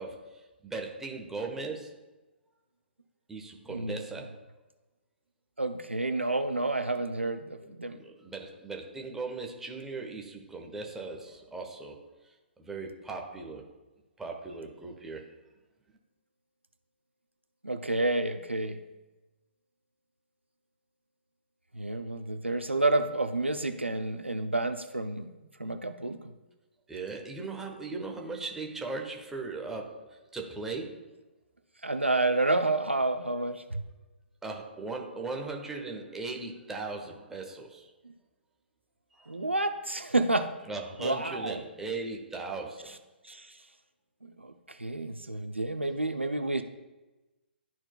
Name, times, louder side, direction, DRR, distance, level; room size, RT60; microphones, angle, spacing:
voice 1, 0.0-2.0 3.3-4.4 7.6-7.7 8.0-12.0 12.6-13.7 14.2-15.3 26.9-31.1 32.1-32.4 34.4-37.9 39.1-39.4 40.6-43.0, right 3 dB, 5° right, 1 dB, 0.8 m, -38 dB
voice 2, 3.7-4.1 5.6-8.0 17.6-18.8 21.7-25.3 25.6-26.2 31.8-33.8 39.3-40.5 41.0-41.6 43.2-43.5 44.4-46.6, right 2 dB, 85° right, 8 dB, 0.6 m, -29 dB
12.0 x 4.3 x 2.3 m, 1.1 s
figure-of-eight pair, 130°, 6 cm